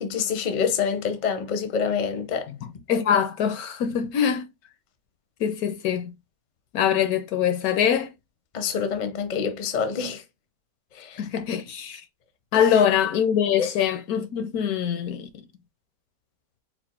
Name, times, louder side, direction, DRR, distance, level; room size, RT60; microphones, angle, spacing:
voice 1, 0.0-2.5 8.5-10.2 10.9-11.2 12.5-12.8 13.6-13.7, left 6 dB, 50° left, 0.5 m, -27 dB
voice 2, 2.9-4.5 5.4-6.1 6.7-8.1 11.2-12.0 12.5-15.3, left 8 dB, 70° left, 1.0 m, -23 dB
4.3 x 2.1 x 4.3 m
omnidirectional pair, 1.8 m